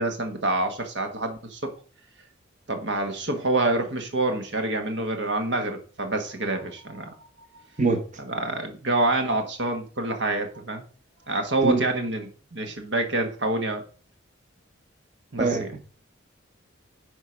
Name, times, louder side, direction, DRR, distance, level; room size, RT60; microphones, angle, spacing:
voice 1, 0.0-1.7 2.7-7.3 7.5-7.6 8.2-10.8 11.3-13.8 15.3-15.7, right 2 dB, 70° right, 5 dB, 1.6 m, -27 dB
voice 2, 15.4-15.8, right 3 dB, 40° right, 4 dB, 1.4 m, -23 dB
10.5 x 4.9 x 5.2 m, 0.40 s
head